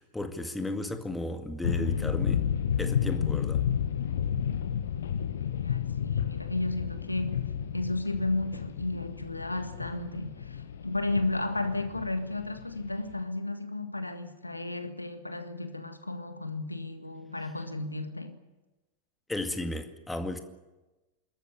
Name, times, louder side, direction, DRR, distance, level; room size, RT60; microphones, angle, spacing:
voice 1, 0.0-2.4 2.8-3.6 19.3-20.4, left 1 dB, 5° left, 2.1 m, -34 dB
sound 1, 1.6-13.1, left 8 dB, 65° left, 1.4 m, -31 dB
voice 2, 5.4-18.4, left 2 dB, 85° left, 1.7 m, -33 dB
26.0 x 14.0 x 9.9 m
figure-of-eight pair, 90°, 0 cm